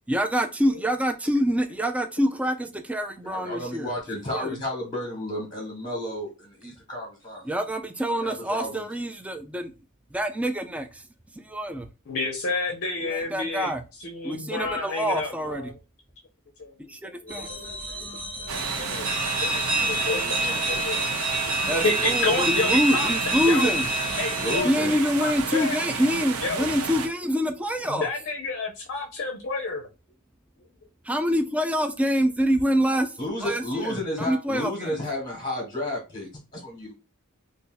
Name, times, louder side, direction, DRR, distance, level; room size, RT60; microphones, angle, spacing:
voice 1, 0.1-3.9 4.3-4.6 7.4-9.7 10.1-11.0 11.5-11.9 13.0-13.8 14.2-15.7 16.9-17.5 21.7-23.9 24.6-28.1 31.1-34.9, equal, 5° right, 0.3 m, -26 dB
voice 2, 3.2-7.5 8.0-8.9 19.5-20.9 24.3-24.9 33.2-36.9, left 1 dB, 25° left, 1.2 m, -32 dB
voice 3, 12.1-13.7 14.0-15.7 16.6-17.8 18.9-19.1 19.4-19.5 19.9-20.2 20.7-21.0 21.4-23.1 23.4-23.8 24.2-25.8 26.4-26.7 27.9-29.9, left 3 dB, 55° left, 0.6 m, -30 dB
sound 1, 17.3-24.6, right 1 dB, 45° right, 1.1 m, -28 dB
sound 2, 18.5-27.1, right 5 dB, 85° right, 0.6 m, -32 dB
2.6 x 2.5 x 3.8 m
head